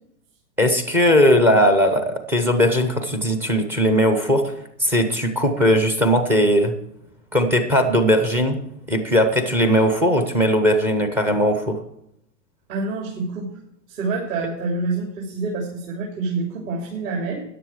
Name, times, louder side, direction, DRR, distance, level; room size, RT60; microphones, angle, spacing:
voice 1, 0.6-4.5 4.8-6.7 7.3-8.6 8.9-11.8, equal, 5° right, 7 dB, 0.4 m, -18 dB
voice 2, 12.7-13.5 13.9-17.4, right 3 dB, 55° right, -1 dB, 3.4 m, -27 dB
13.5 x 10.0 x 4.7 m, 0.77 s
hypercardioid pair, 135°, 49 cm